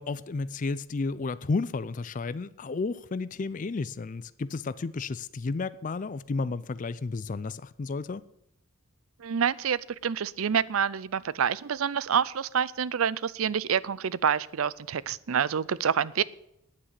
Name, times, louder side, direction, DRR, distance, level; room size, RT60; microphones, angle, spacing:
voice 1, 0.0-8.2, left 3 dB, 35° left, 0.4 m, -32 dB
voice 2, 9.2-16.2, right 7 dB, 75° right, 0.5 m, -27 dB
9.8 x 8.8 x 8.1 m
head